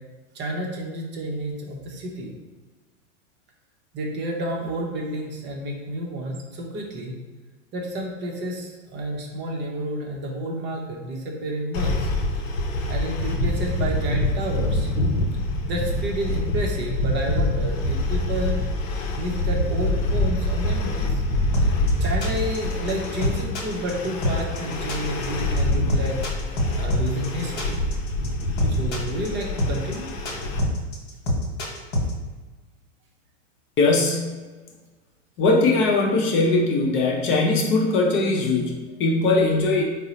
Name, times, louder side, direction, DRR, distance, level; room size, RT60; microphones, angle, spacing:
voice 1, 0.3-2.3 3.9-7.2 7.7-12.1 12.9-14.9 15.6-18.6 19.1-21.2 21.6-21.7 22.0-26.2 26.7-27.8 28.7-30.2, right 1 dB, 30° right, 0 dB, 0.6 m, -30 dB
sound 1, 11.7-30.6, left 1 dB, 85° left, 0.6 m, -25 dB
sound 2, 21.5-32.1, left 1 dB, 50° left, 1.2 m, -25 dB
voice 2, 33.8-34.4 35.4-39.8, left 3 dB, 30° left, -1 dB, 0.6 m, -20 dB
3.7 x 2.0 x 4.0 m, 1.3 s
hypercardioid pair, 100°, 39 cm